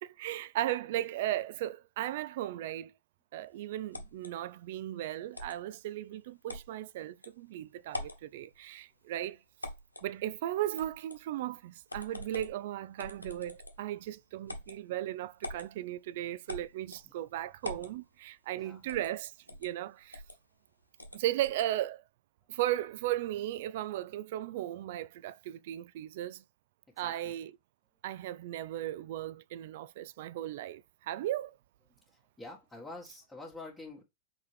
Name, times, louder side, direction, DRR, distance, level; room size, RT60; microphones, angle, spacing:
voice 1, 0.0-2.9 3.3-9.4 10.0-19.3 19.6-20.2 21.1-22.0 22.5-26.4 27.0-27.5 28.0-31.5, right 13 dB, 55° right, 0.4 m, -36 dB
sound 1, 3.9-4.3 5.3-5.6 6.5-6.7 7.2-7.3 7.9-8.2 9.6-10.1 10.8-11.2 11.9-12.6 13.0-13.9 14.5-14.8 15.4-15.7 16.5-17.1 17.6-17.9 18.9-19.1 19.5-19.7 20.1-20.4 21.0-21.7, left 2 dB, 85° left, 1.1 m, -43 dB
voice 2, 18.5-18.9 27.0-27.3 32.1-34.0, left 2 dB, 10° left, 1.7 m, -47 dB
6.4 x 4.4 x 3.3 m
figure-of-eight pair, 90°, 0 cm